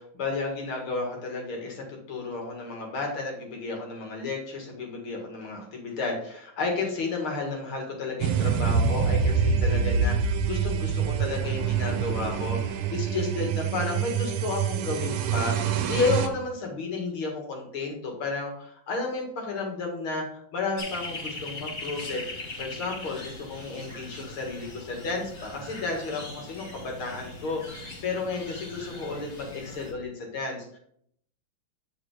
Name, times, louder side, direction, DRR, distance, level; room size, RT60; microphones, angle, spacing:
voice 1, 0.0-22.2 22.6-30.8, left 3 dB, 70° left, 1 dB, 2.6 m, -32 dB
sound 1, 8.2-16.3, right 6 dB, 85° right, 1.7 m, -26 dB
sound 2, 20.8-29.9, left 2 dB, 40° left, 2.0 m, -40 dB
8.4 x 4.8 x 4.9 m, 0.67 s
omnidirectional pair, 2.4 m